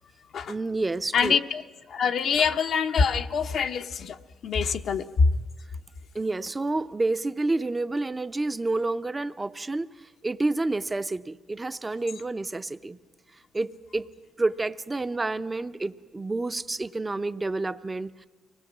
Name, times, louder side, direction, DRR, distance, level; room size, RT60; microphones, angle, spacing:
voice 1, 0.5-1.4 6.1-13.0 13.5-14.1 14.4-18.3, right 2 dB, 20° right, 12 dB, 0.7 m, -29 dB
voice 2, 1.1-1.6 1.9-4.2 4.4-5.0 5.4-5.5, left 6 dB, 65° left, 6 dB, 0.9 m, -25 dB
24.5 x 19.0 x 7.3 m, 1.3 s
cardioid pair, 90°, 0 cm